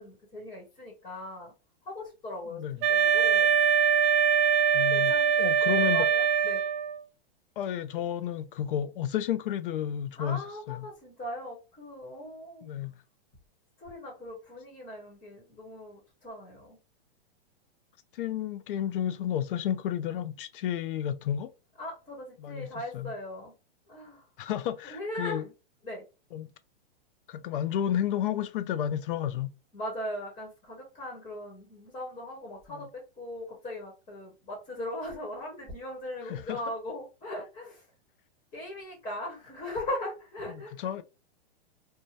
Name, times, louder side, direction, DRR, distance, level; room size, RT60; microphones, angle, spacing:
voice 1, 0.0-1.5 1.8-3.5 4.9-5.6 5.9-6.6 10.2-12.6 13.8-16.8 21.8-23.5 23.9-24.2 24.8-25.4 25.8-26.0 29.7-37.8 38.5-41.0, left 1 dB, 15° left, 1.1 m, -39 dB
Wind instrument woodwind instrument, 2.8-7.0, right 8 dB, 30° right, 0.4 m, -23 dB
voice 2, 4.7-6.1 7.6-10.9 12.6-13.0 18.1-21.5 22.4-23.1 24.4-25.4 26.3-26.5 27.3-29.5 32.7-32.9 36.3-36.6 40.8-41.0, left 10 dB, 60° left, 0.4 m, -31 dB
2.7 x 2.2 x 3.1 m
hypercardioid pair, 150°, 31 cm